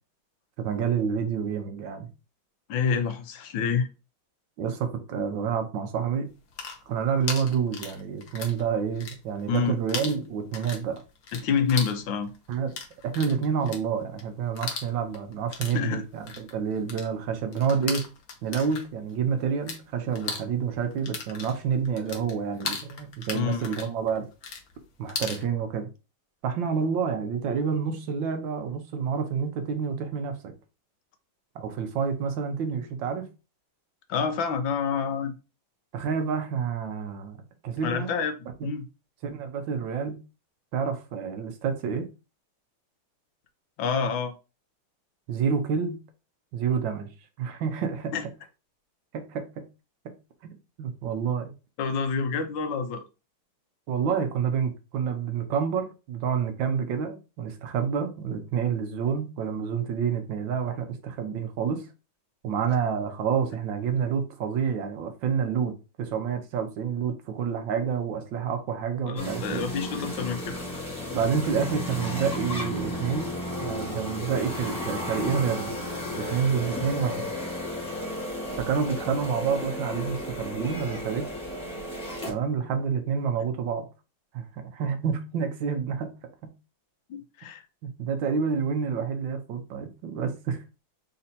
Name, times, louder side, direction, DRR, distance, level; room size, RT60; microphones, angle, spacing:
voice 1, 0.6-2.1 4.6-6.3 6.9-11.0 12.5-12.7 13.0-18.0 18.4-24.2 25.0-25.9 26.4-30.5 31.5-33.3 35.9-37.4 37.6-38.1 38.6-38.7 39.2-40.2 40.7-42.1 45.3-46.0 46.5-47.1 47.4-48.1 49.1-49.7 50.0-50.1 50.8-51.5 53.9-61.9 62.4-65.7 66.0-69.7 71.1-73.3 73.6-75.7 76.1-77.3 78.6-81.3 82.3-83.9 84.3-86.1 86.4-86.5 87.8-90.6, right 6 dB, 75° right, 1.5 m, -28 dB
voice 2, 2.7-3.9 9.5-9.8 11.3-12.3 15.7-16.0 23.3-23.8 34.1-35.3 37.8-38.4 38.6-38.8 43.8-44.3 48.1-48.2 51.8-53.0 69.1-70.6 87.1-87.6, left 6 dB, 75° left, 1.4 m, -27 dB
sound 1, 6.3-8.6 8.9-9.6 9.9-19.8 20.1-25.4, left 5 dB, 55° left, 1.1 m, -37 dB
sound 2, 69.2-82.3, left 1 dB, 5° left, 1.3 m, -33 dB
4.2 x 2.8 x 4.0 m
omnidirectional pair, 2.2 m